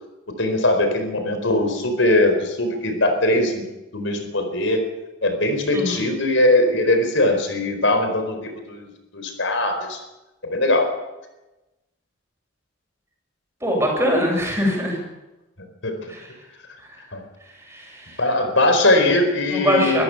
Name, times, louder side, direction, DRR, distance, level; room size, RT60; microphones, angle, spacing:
voice 1, 0.4-3.7 3.9-4.9 5.2-10.0 10.4-10.9 15.8-16.0 17.1-17.2 18.2-20.0, left 1 dB, 75° left, 6 dB, 4.6 m, -20 dB
voice 2, 5.7-6.1 13.6-15.0 16.1-16.3 17.7-18.2 19.5-20.0, equal, 15° right, 0 dB, 7.7 m, -22 dB
24.5 x 14.5 x 7.3 m, 1.0 s
head